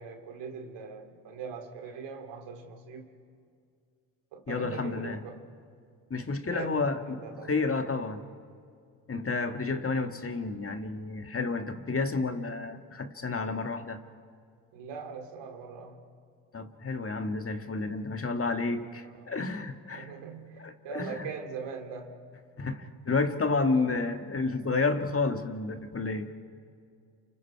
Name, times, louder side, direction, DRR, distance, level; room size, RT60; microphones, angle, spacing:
voice 1, 0.0-3.1 4.3-5.4 6.5-7.5 14.7-16.0 19.1-19.3 19.9-22.2 23.7-23.9, right 5 dB, 80° right, 4 dB, 2.6 m, -41 dB
voice 2, 4.5-5.2 6.1-8.2 9.1-14.0 16.5-20.1 20.6-21.3 22.6-26.3, left 3 dB, 30° left, 7 dB, 1.8 m, -31 dB
29.5 x 26.5 x 4.8 m, 2.3 s
supercardioid pair, 55°, 42 cm